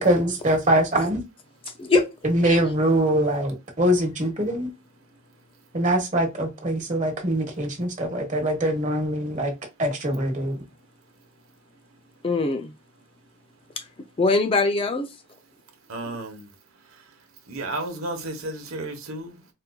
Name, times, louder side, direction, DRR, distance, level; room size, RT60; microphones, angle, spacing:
voice 1, 0.0-1.2 2.2-4.7 5.7-9.5 9.8-10.6, right 1 dB, 35° right, 1.2 m, -23 dB
voice 2, 2.8-3.3 3.8-3.9 4.4-4.6 5.8-6.0 12.2-12.7 13.8-13.9 14.2-15.1, left 3 dB, 25° left, 0.4 m, -24 dB
voice 3, 15.9-19.5, right 2 dB, 75° right, 1.0 m, -34 dB
4.3 x 2.5 x 2.2 m
head